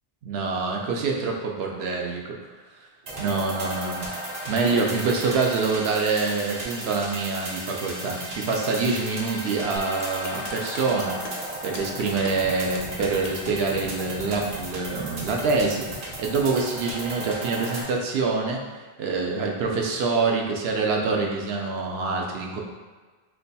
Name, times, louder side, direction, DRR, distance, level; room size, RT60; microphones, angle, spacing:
voice 1, 0.2-2.4 3.2-4.1 4.5-11.2 11.6-22.6, right 4 dB, 80° right, 0 dB, 0.8 m, -26 dB
sound 1, 3.0-17.8, right 1 dB, 45° right, 0.7 m, -35 dB
sound 2, 9.8-13.5, left 4 dB, 55° left, 0.5 m, -40 dB
3.0 x 2.2 x 4.0 m, 1.4 s
omnidirectional pair, 1.0 m